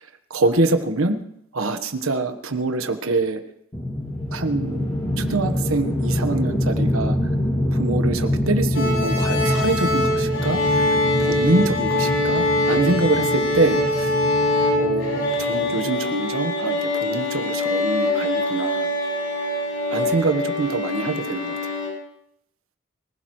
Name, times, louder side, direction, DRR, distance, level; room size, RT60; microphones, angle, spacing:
voice 1, 0.3-1.2 1.5-3.4 4.3-4.9 5.2-7.2 7.7-10.6 11.2-14.1 14.8-18.9 19.9-21.7, right 2 dB, 85° right, 8 dB, 1.3 m, -24 dB
sound 1, 3.7-16.0, left 1 dB, 25° left, 2.4 m, -25 dB
sound 2, 8.7-21.9, left 1 dB, 70° left, 6.6 m, -23 dB
24.5 x 16.0 x 3.2 m, 0.72 s
head